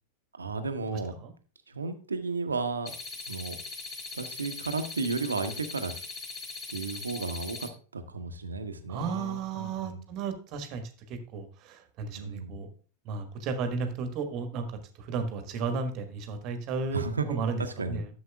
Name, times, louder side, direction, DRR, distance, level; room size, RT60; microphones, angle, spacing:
voice 1, 0.3-1.2 1.7-2.9 3.3-3.5 4.1-5.9 6.7-10.1 12.1-12.5 16.9-18.0, right 4 dB, 75° right, 8 dB, 1.0 m, -34 dB
voice 2, 0.9-1.3 8.9-12.7 13.0-18.1, right 4 dB, 40° right, 7 dB, 1.4 m, -34 dB
sound 1, 2.9-7.7, left 3 dB, 30° left, 1.5 m, -40 dB
12.5 x 7.1 x 2.4 m, 0.38 s
figure-of-eight pair, 90°, 0 cm